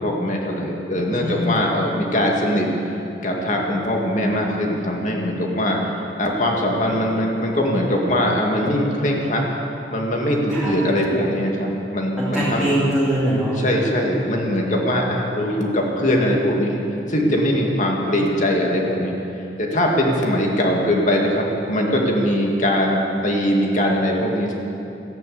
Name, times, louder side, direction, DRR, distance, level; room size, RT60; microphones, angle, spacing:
voice 1, 0.0-2.7 3.2-5.8 6.2-9.4 9.9-12.7 13.6-16.8 17.1-19.1 19.6-24.5, equal, 45° left, 0 dB, 2.1 m, -21 dB
voice 2, 1.1-1.5 10.5-10.7 12.2-13.6, right 1 dB, 5° right, -10 dB, 2.6 m, -22 dB
14.0 x 10.5 x 7.9 m, 2.9 s
head